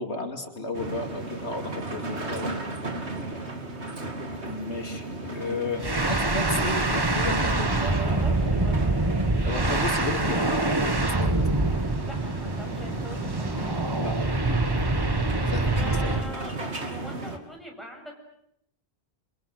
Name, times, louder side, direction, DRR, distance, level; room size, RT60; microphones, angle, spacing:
voice 1, 0.0-2.5 4.4-8.2 9.4-11.5 14.0-14.1 15.4-16.1, left 3 dB, 75° left, 4 dB, 3.1 m, -33 dB
sound 1, 0.7-17.4, right 2 dB, 80° right, 3.0 m, -36 dB
voice 2, 2.6-2.9 7.4-7.9 8.2-8.9 12.0-13.5 15.7-16.5 16.9-18.1, left 1 dB, ahead, 0 dB, 7.6 m, -42 dB
sound 2, 5.8-16.3, right 2 dB, 20° right, 1.3 m, -25 dB
29.0 x 26.0 x 7.7 m, 0.75 s
omnidirectional pair, 1.1 m